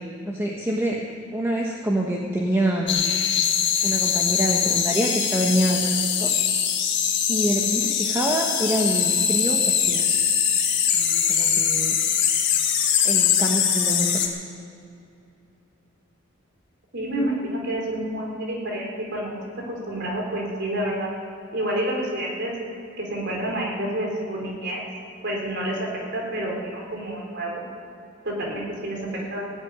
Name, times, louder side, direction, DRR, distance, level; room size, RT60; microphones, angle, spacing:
voice 1, 0.2-1.0 1.3-3.1 3.8-5.8 6.2-6.3 7.3-10.0 10.9-11.9 13.0-14.2 29.1-29.2, right 1 dB, 15° right, -1 dB, 1.2 m, -26 dB
sound 1, 2.9-14.3, left 8 dB, 60° left, 1.8 m, -22 dB
voice 2, 16.9-19.4 19.7-21.1 21.5-22.5 23.0-24.8 25.2-25.9 26.1-27.6 28.2-29.0 29.3-29.4, right 1 dB, 60° right, -1 dB, 4.0 m, -28 dB
17.0 x 8.1 x 9.6 m, 2.7 s
head